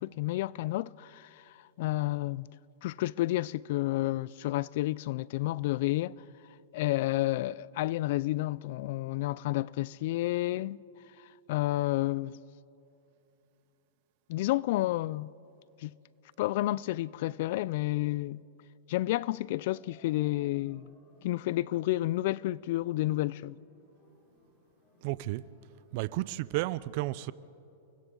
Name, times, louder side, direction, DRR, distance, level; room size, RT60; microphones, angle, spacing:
voice 1, 0.0-2.5 2.8-6.2 6.7-10.8 11.2-12.4 14.3-15.3 15.8-15.9 16.4-18.4 18.9-20.9 21.2-23.6, left 17 dB, 60° left, 0.4 m, -30 dB
sound 1, 19.7-26.2, left 1 dB, 35° left, 4.6 m, -64 dB
voice 2, 25.0-25.4 25.9-27.3, right 18 dB, 50° right, 0.5 m, -32 dB
28.5 x 24.0 x 3.9 m
hypercardioid pair, 135°, 0 cm